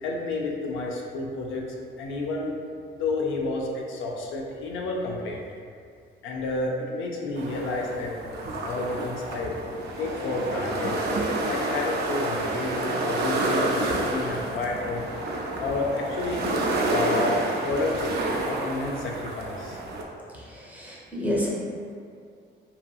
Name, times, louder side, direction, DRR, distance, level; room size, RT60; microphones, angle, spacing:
voice 1, 0.0-1.6 2.0-2.5 3.0-5.5 6.2-8.1 8.6-9.6 10.0-10.9 11.4-15.1 15.6-16.5 16.9-17.3 17.6-18.1 18.4-19.8, left 3 dB, 85° left, -1 dB, 0.5 m, -30 dB
sound 1, 7.4-20.0, right 2 dB, 55° right, 0.4 m, -29 dB
voice 2, 20.3-21.5, left 1 dB, 10° right, -5 dB, 0.6 m, -30 dB
2.7 x 2.7 x 2.3 m, 2.2 s
cardioid pair, 90°, 20 cm